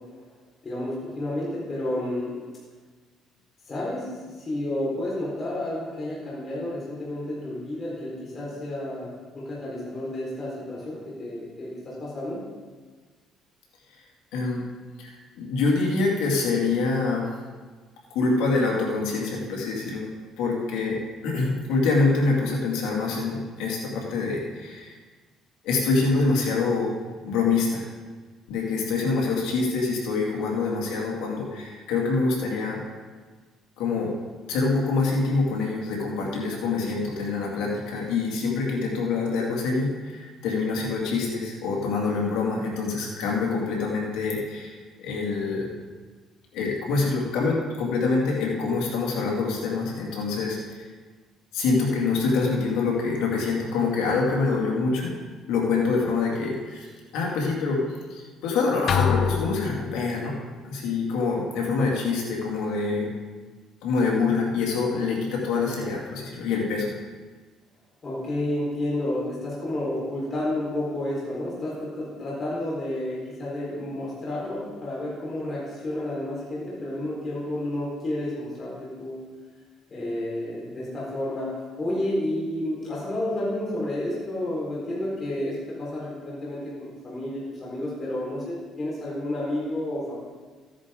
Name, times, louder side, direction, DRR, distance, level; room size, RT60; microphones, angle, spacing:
voice 1, 0.6-2.4 3.7-9.1 9.3-12.4 68.0-79.2 79.9-90.1, left 1 dB, 35° left, -6 dB, 4.3 m, -31 dB
voice 2, 14.3-14.6 15.0-17.3 18.1-20.1 20.4-25.0 25.6-27.0 27.3-27.8 28.5-32.8 33.8-34.1 34.5-45.7 46.5-50.8 51.5-55.2 55.5-57.8 58.1-60.4 60.6-63.1 63.8-66.9, left 4 dB, 85° left, -2 dB, 2.4 m, -25 dB
sound 1, 58.9-60.3, left 7 dB, 50° left, 0.9 m, -25 dB
15.0 x 10.0 x 3.8 m, 1.4 s
cardioid pair, 105°, 0 cm